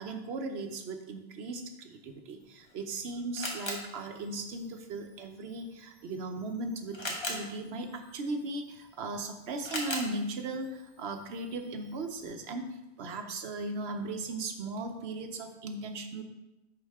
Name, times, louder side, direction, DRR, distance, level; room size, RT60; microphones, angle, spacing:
voice 1, 0.0-16.2, right 2 dB, 75° right, 5 dB, 1.0 m, -37 dB
Camera, 2.4-12.3, left 1 dB, 25° left, 1.1 m, -43 dB
10.0 x 4.2 x 3.5 m, 0.97 s
omnidirectional pair, 1.1 m